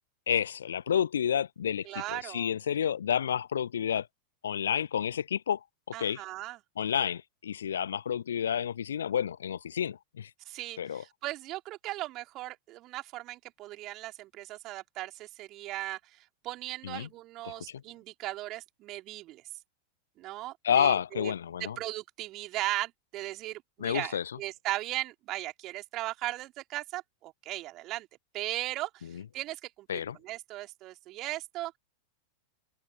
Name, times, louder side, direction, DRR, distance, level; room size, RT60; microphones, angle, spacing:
voice 1, 0.3-4.1 4.4-5.6 5.9-6.2 6.8-10.3 10.8-11.0 16.8-17.1 17.7-17.8 20.6-21.8 23.8-24.2 29.1-29.2 29.9-30.2, left 8 dB, 65° left, 0.6 m, -30 dB
voice 2, 1.8-2.5 5.9-6.6 10.4-19.4 20.2-21.3 21.6-28.1 28.3-31.7, right 17 dB, 35° right, 3.5 m, -38 dB
figure-of-eight pair, 90°, 0 cm